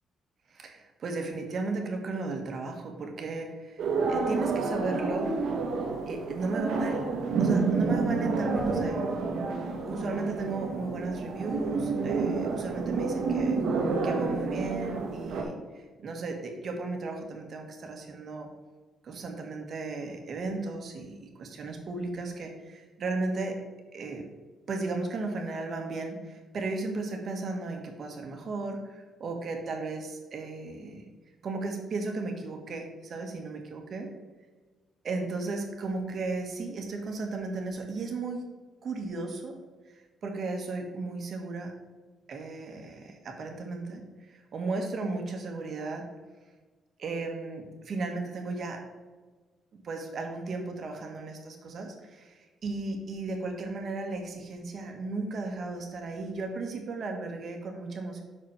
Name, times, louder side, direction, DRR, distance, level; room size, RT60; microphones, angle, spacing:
voice 1, 0.5-5.3 6.1-7.1 7.4-9.0 9.9-13.6 14.0-18.5 19.0-23.6 23.9-24.2 24.7-31.0 31.4-34.1 35.0-38.5 38.8-41.7 42.3-46.0 47.0-48.8 49.7-58.2, right 3 dB, 55° right, 3 dB, 1.7 m, -35 dB
sound 1, 3.8-15.4, right 4 dB, 75° right, 1.4 m, -29 dB
6.2 x 5.2 x 5.7 m, 1.4 s
cardioid pair, 90°, 0 cm